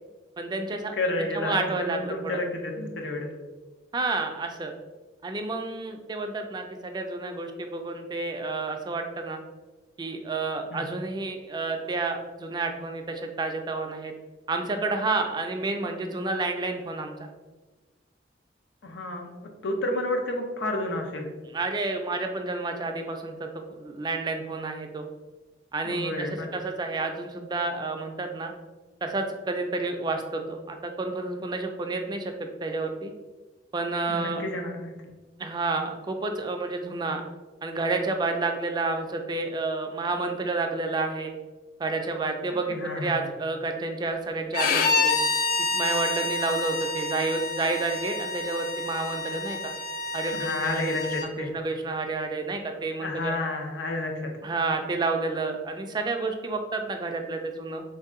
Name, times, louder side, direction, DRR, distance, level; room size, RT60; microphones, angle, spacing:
voice 1, 0.4-0.9 1.2-2.4 3.9-4.7 5.2-9.4 10.0-14.1 14.5-17.3 21.5-25.1 25.7-28.5 29.0-32.3 32.6-33.1 33.7-34.4 35.4-37.2 37.6-41.3 41.8-45.2 45.7-49.7 50.1-50.9 51.4-53.4 54.4-57.8, right 3 dB, 25° right, 5 dB, 0.3 m, -30 dB
voice 2, 0.9-3.3 10.7-10.9 18.8-21.3 25.8-26.5 34.1-34.9 42.7-43.3 50.3-51.5 53.0-54.3, left 2 dB, 85° left, 2 dB, 0.7 m, -30 dB
Bowed string instrument, 44.5-51.3, left 3 dB, 50° left, 0.3 m, -28 dB
3.2 x 2.7 x 3.6 m, 1.2 s
head